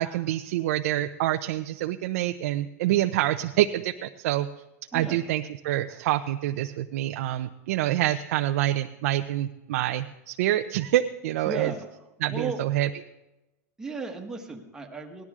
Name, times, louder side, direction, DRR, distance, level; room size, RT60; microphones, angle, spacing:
voice 1, 0.0-4.5 4.9-11.7 12.2-12.9, right 14 dB, 65° right, 7 dB, 0.5 m, -26 dB
voice 2, 11.4-11.8 12.3-12.6 13.8-15.2, right 3 dB, 5° right, 1 dB, 1.4 m, -35 dB
18.0 x 11.5 x 3.7 m, 0.98 s
supercardioid pair, 155°, 9 cm